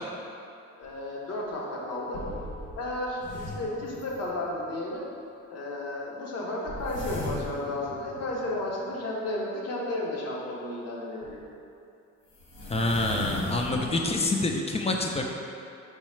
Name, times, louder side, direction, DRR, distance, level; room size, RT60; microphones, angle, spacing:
sound 1, 0.8-0.9 1.5-1.6 2.1-4.7 6.7-9.0 11.2-11.3 12.3-14.6, equal, 80° left, 1.2 m, -39 dB
voice 1, 0.8-2.2 2.8-5.1 5.5-11.4, left 1 dB, 55° left, -3 dB, 0.9 m, -33 dB
voice 2, 12.6-15.3, left 2 dB, 20° left, 1 dB, 0.4 m, -27 dB
4.7 x 2.1 x 4.2 m, 2.6 s
cardioid pair, 90°, 30 cm